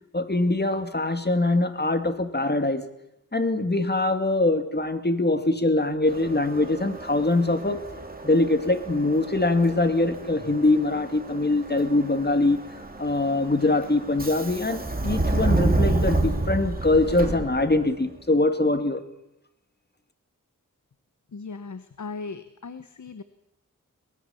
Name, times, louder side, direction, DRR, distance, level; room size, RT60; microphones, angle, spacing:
voice 1, 0.1-2.8 3.3-7.8 8.2-12.6 13.0-19.0, left 2 dB, 30° left, 9 dB, 2.2 m, -23 dB
Subway metro underground, 6.1-18.0, right 2 dB, 30° right, 3.3 m, -30 dB
voice 2, 21.3-23.2, left 4 dB, 65° left, 12 dB, 1.1 m, -38 dB
23.0 x 20.0 x 7.1 m, 0.87 s
wide cardioid pair, 65°, 32 cm